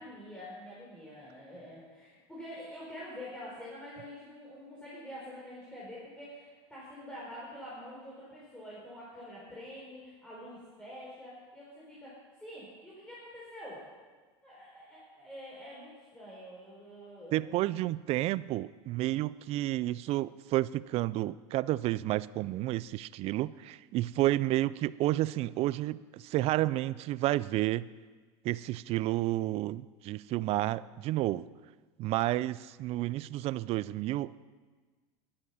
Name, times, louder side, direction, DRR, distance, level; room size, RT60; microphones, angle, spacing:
voice 1, 0.0-13.9 14.4-17.7, equal, 5° left, -8 dB, 4.1 m, -46 dB
voice 2, 17.3-27.9 28.4-31.5 32.0-34.4, right 16 dB, 45° right, 19 dB, 0.4 m, -31 dB
11.5 x 11.5 x 5.7 m, 1.4 s
supercardioid pair, 120°, 15 cm